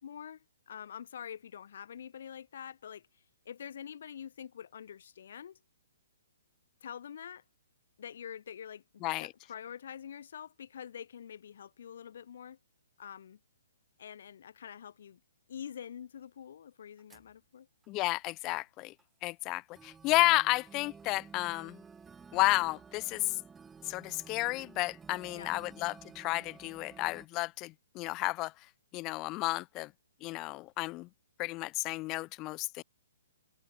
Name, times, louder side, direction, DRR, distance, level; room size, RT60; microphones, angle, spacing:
voice 1, 0.0-3.1 3.4-5.6 6.8-7.4 8.0-12.6 13.0-13.4 14.0-15.2 15.5-17.7 25.3-25.5, left 8 dB, 60° left, 3.5 m, -46 dB
voice 2, 9.0-9.3 17.9-18.9 19.2-21.8 22.3-23.4 23.9-28.5 28.9-29.9 30.2-31.1 31.4-32.8, left 21 dB, 30° left, 0.4 m, -32 dB
sound 1, 15.8-15.9 17.0-17.3 17.8-17.9 19.0-19.1 19.7-27.3, right 5 dB, 10° right, 3.1 m, -53 dB
figure-of-eight pair, 130°, 0 cm